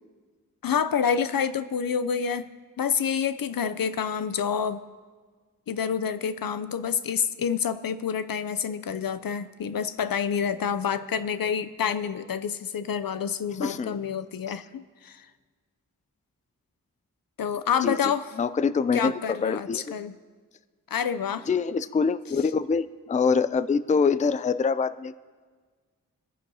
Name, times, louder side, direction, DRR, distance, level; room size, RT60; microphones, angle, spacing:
voice 1, 0.6-2.5 2.8-4.8 5.7-15.3 17.4-18.3 18.9-20.2 20.9-21.5, left 7 dB, 75° left, 12 dB, 0.6 m, -28 dB
voice 2, 13.6-14.0 14.5-14.6 17.8-19.8 21.5-25.2, left 5 dB, 20° left, 15 dB, 0.4 m, -25 dB
25.5 x 10.0 x 2.8 m, 1.5 s
wide cardioid pair, 75°, 34 cm